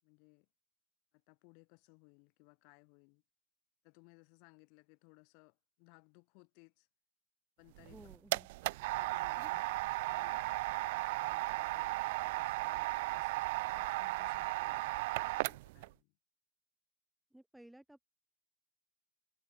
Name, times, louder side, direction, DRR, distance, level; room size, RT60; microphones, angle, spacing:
voice 1, 0.0-0.5 1.1-3.2 3.8-6.9 7.6-8.0 9.0-9.6 10.1-16.1, left 39 dB, 45° left, 5.3 m, -63 dB
voice 2, 7.8-8.5 9.4-9.5 17.3-18.1, right 1 dB, 5° right, 1.7 m, -57 dB
sound 1, 7.8-15.9, right 21 dB, 50° right, 0.4 m, -36 dB
figure-of-eight pair, 90°, 0 cm